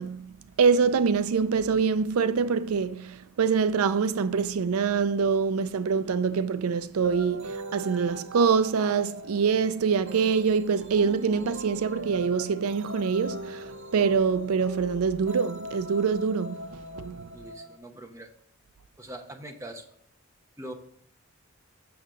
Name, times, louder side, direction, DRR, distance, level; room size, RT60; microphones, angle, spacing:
voice 1, 0.0-17.3, right 5 dB, 85° right, 0.4 m, -25 dB
sound 1, 7.0-17.8, right 1 dB, 60° right, 0.9 m, -41 dB
voice 2, 17.3-18.3 19.0-20.0 20.6-20.7, right 1 dB, 15° right, 1.0 m, -42 dB
7.9 x 6.4 x 3.8 m
head